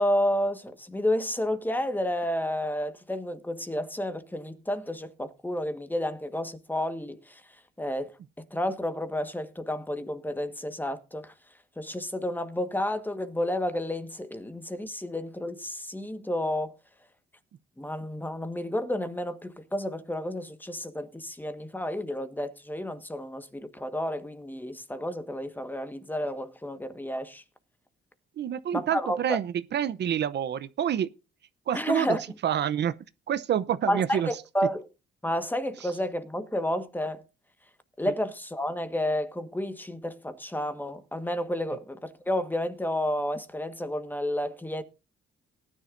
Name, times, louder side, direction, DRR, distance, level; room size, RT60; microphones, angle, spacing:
voice 1, 0.0-7.4 7.8-8.1 8.4-11.3 11.8-16.7 17.8-27.4 28.7-29.4 31.7-32.2 33.9-34.9 35.2-37.2 38.0-44.8, left 1 dB, 10° left, 1.5 m, -31 dB
voice 2, 28.4-31.1 31.7-32.2 32.4-32.9 33.3-34.3 38.0-38.1, right 9 dB, 60° right, 0.8 m, -27 dB
19.0 x 10.0 x 2.6 m
cardioid pair, 90°, 20 cm